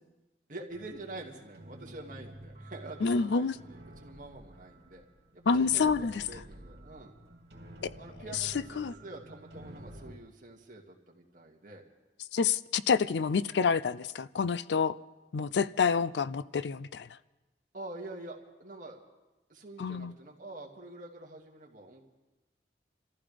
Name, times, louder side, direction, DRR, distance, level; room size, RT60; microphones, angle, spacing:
voice 1, 0.5-5.0 5.3-7.1 8.0-11.8 17.7-19.0 19.5-22.0, right 2 dB, 50° right, -1 dB, 2.2 m, -46 dB
sound 1, 0.7-10.2, right 1 dB, 75° right, 2.7 m, -50 dB
voice 2, 3.0-3.5 5.5-6.1 7.8-7.9 8.8-8.9 12.3-15.0 15.3-17.1 19.8-20.1, left 5 dB, 80° left, 17 dB, 0.4 m, -28 dB
27.5 x 14.5 x 3.4 m, 1.1 s
head